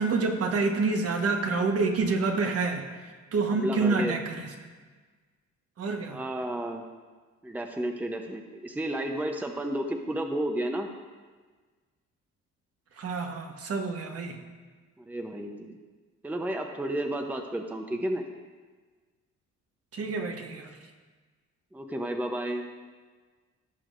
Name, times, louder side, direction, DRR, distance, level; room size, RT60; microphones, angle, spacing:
voice 1, 0.0-4.5 5.8-6.2 13.0-14.4 19.9-20.7, right 4 dB, 50° right, 3 dB, 1.2 m, -28 dB
voice 2, 3.5-4.2 6.1-6.8 7.4-10.9 15.0-15.8 16.2-18.2 21.7-22.6, right 1 dB, 5° right, 4 dB, 0.7 m, -32 dB
16.5 x 6.3 x 2.5 m, 1.4 s
cardioid pair, 90°, 30 cm